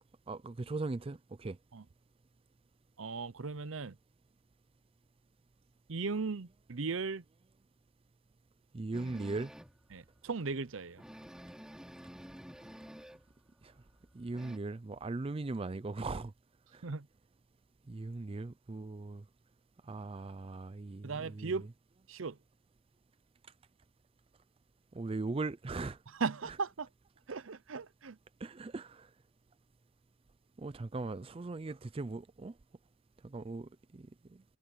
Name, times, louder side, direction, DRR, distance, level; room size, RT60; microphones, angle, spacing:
voice 1, 0.3-1.6 8.7-9.5 13.6-13.7 14.1-16.3 16.7-16.8 17.9-19.2 19.8-21.5 24.9-26.0 28.4-29.1 30.6-32.5 33.2-34.4, right 3 dB, 25° right, 0.4 m, -39 dB
voice 2, 3.0-4.0 5.9-7.2 9.9-11.0 16.8-17.1 21.0-21.7 22.1-22.4 26.1-26.9 27.3-28.2, right 4 dB, 65° right, 0.7 m, -37 dB
sound 1, 8.9-9.8 10.3-10.4 10.7-10.8 11.0-13.3 13.6-14.6, equal, 5° right, 3.1 m, -50 dB
head